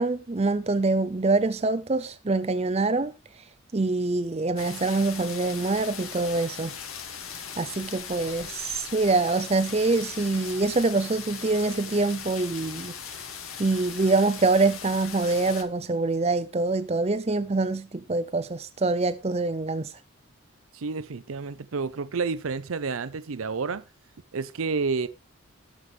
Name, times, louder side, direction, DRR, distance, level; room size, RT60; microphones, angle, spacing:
voice 1, 0.0-3.1 3.7-6.7 7.6-12.9 13.6-20.0, right 3 dB, 30° right, 0.5 m, -25 dB
sound 1, 4.6-15.6, left 7 dB, 80° left, 2.0 m, -39 dB
voice 2, 20.7-23.8 24.3-25.1, right 4 dB, 80° right, 0.6 m, -30 dB
19.0 x 6.8 x 3.3 m
head